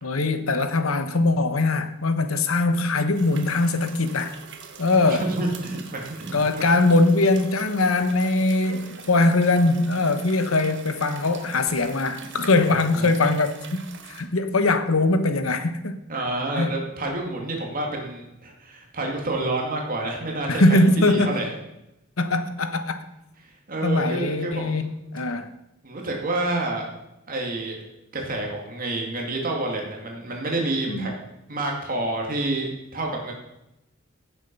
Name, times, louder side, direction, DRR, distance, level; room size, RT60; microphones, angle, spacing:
voice 1, 0.0-4.4 4.8-5.3 6.3-16.0 16.5-16.8 20.5-21.3 22.2-23.1 23.8-25.5 30.9-31.1, left 2 dB, 85° left, 1.1 m, -21 dB
sound 1, 3.1-14.2, right 6 dB, 60° right, 1.6 m, -44 dB
voice 2, 5.1-6.7 12.7-13.1 16.1-21.5 23.4-24.9 25.8-26.9 27.3-27.8 28.1-31.1 31.5-33.3, right 2 dB, 45° right, 2.3 m, -29 dB
16.0 x 7.5 x 5.4 m
head